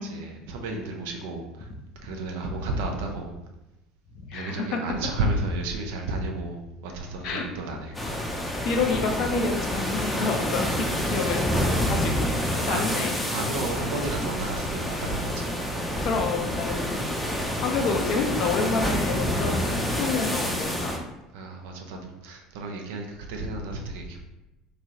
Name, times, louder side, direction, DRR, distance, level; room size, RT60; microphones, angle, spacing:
voice 1, 0.0-1.7 2.0-3.3 4.3-8.0 12.7-13.0 13.3-15.6 21.3-22.0 22.2-24.2, right 2 dB, 70° right, 2 dB, 0.5 m, -32 dB
voice 2, 4.1-4.8 7.2-7.4 8.6-13.2 16.0-17.0 17.3-21.0, left 4 dB, 55° left, 3 dB, 0.5 m, -29 dB
sound 1, 7.9-21.0, equal, 5° left, 0.6 m, -28 dB
3.0 x 2.7 x 2.6 m, 0.95 s
hypercardioid pair, 70°, 0 cm